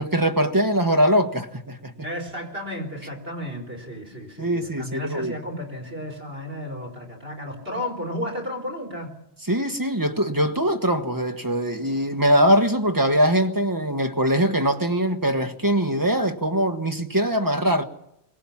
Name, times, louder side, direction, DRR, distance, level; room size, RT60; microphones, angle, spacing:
voice 1, 0.0-1.9 4.4-5.3 9.5-17.8, equal, 20° right, 1.3 m, -22 dB
voice 2, 2.0-9.2, left 1 dB, 65° right, 4.3 m, -33 dB
22.5 x 18.0 x 7.3 m
omnidirectional pair, 1.1 m